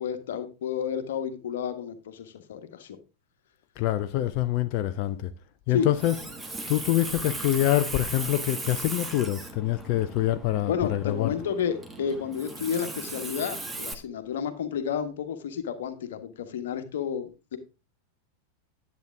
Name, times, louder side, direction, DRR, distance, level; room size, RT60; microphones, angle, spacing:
voice 1, 0.0-3.0 5.7-5.9 10.7-17.6, left 7 dB, 60° left, 1.3 m, -31 dB
voice 2, 3.8-5.3 5.7-6.1 6.7-11.3, left 14 dB, 45° left, 0.5 m, -25 dB
Water tap faucet, 5.8-13.9, right 2 dB, 10° right, 1.4 m, -37 dB
10.5 x 8.2 x 3.5 m
figure-of-eight pair, 90°, 0 cm